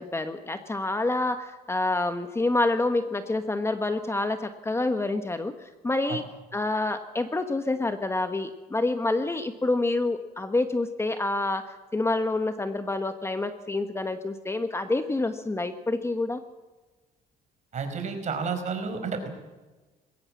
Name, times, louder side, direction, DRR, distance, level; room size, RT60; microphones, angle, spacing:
voice 1, 0.0-6.2 6.5-16.4, left 2 dB, 15° left, 8 dB, 1.3 m, -27 dB
voice 2, 17.7-19.3, right 5 dB, 45° right, 6 dB, 4.9 m, -31 dB
21.5 x 17.5 x 7.4 m, 1.2 s
cardioid pair, 110°, 17 cm